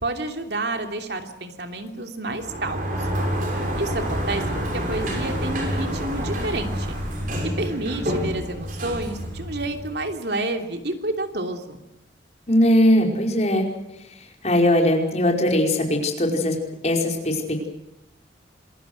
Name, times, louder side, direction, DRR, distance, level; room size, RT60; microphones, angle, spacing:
voice 1, 0.0-3.1 3.8-4.4 4.7-7.0 7.4-11.8, right 2 dB, 65° right, 5 dB, 2.9 m, -29 dB
Sliding door, 2.3-10.1, equal, 45° right, 6.6 m, -28 dB
voice 2, 12.5-13.7 14.0-17.7, left 1 dB, 40° left, 2 dB, 5.1 m, -20 dB
27.0 x 22.5 x 6.4 m, 0.90 s
head